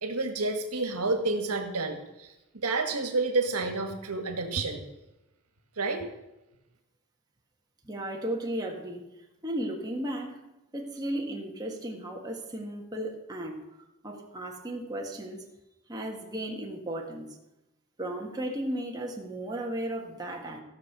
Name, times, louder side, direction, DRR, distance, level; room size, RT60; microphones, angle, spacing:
voice 1, 0.0-2.3 2.5-4.8 5.8-6.0, right 3 dB, 85° right, 5 dB, 1.6 m, -29 dB
voice 2, 7.8-9.0 9.4-10.4 10.7-13.6 14.0-15.4 15.9-17.3 18.0-20.6, right 1 dB, 15° right, 0 dB, 1.5 m, -35 dB
15.5 x 6.3 x 6.1 m, 0.95 s
head